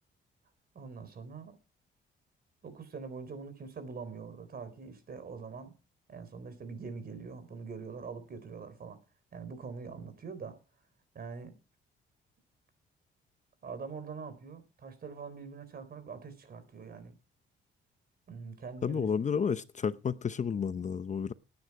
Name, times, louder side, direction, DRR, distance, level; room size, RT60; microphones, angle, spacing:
voice 1, 0.7-1.6 2.6-5.7 6.1-9.0 9.3-10.6 11.1-11.5 13.6-17.2 18.3-19.1, right 5 dB, 50° right, 3.9 m, -44 dB
voice 2, 18.8-21.3, left 6 dB, 40° left, 0.7 m, -31 dB
18.0 x 9.7 x 4.8 m
cardioid pair, 90°, 20 cm